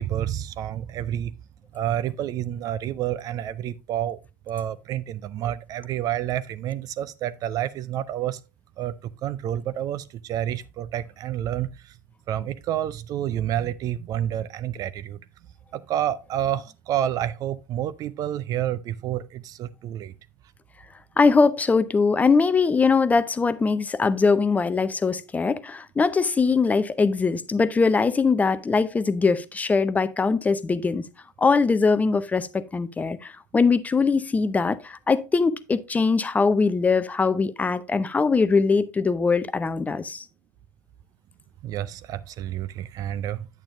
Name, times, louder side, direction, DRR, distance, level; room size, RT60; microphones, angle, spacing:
voice 1, 0.0-1.3 1.7-4.2 4.5-8.4 8.8-9.0 9.2-11.9 12.3-15.2 15.7-20.1 41.6-43.5, right 11 dB, 40° right, 0.4 m, -29 dB
voice 2, 21.2-31.1 31.4-40.2, left 4 dB, 15° left, 0.5 m, -22 dB
8.7 x 8.6 x 2.5 m
figure-of-eight pair, 85°, 10 cm